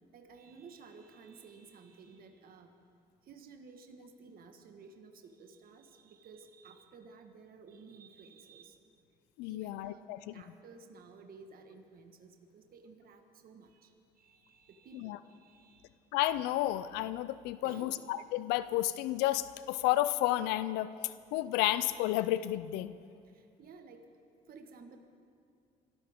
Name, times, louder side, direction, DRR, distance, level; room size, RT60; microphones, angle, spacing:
voice 1, 0.1-2.8 3.2-8.8 9.5-10.0 10.3-15.9 17.6-18.1 23.2-24.1 24.5-25.0, right 4 dB, 60° right, 5 dB, 1.4 m, -54 dB
voice 2, 9.4-10.4 14.9-15.2 16.1-22.9, left 15 dB, 85° left, 14 dB, 0.4 m, -32 dB
26.0 x 13.0 x 3.6 m, 2.3 s
supercardioid pair, 60°, 17 cm